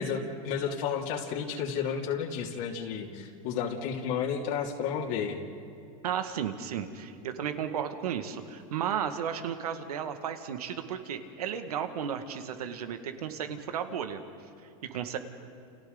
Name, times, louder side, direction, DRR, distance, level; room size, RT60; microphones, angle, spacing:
voice 1, 0.0-5.4, left 7 dB, 60° left, -1 dB, 2.7 m, -32 dB
voice 2, 6.0-14.2 14.9-15.2, right 8 dB, 90° right, 7 dB, 1.9 m, -34 dB
30.0 x 29.0 x 4.0 m, 2.5 s
supercardioid pair, 130°, 19 cm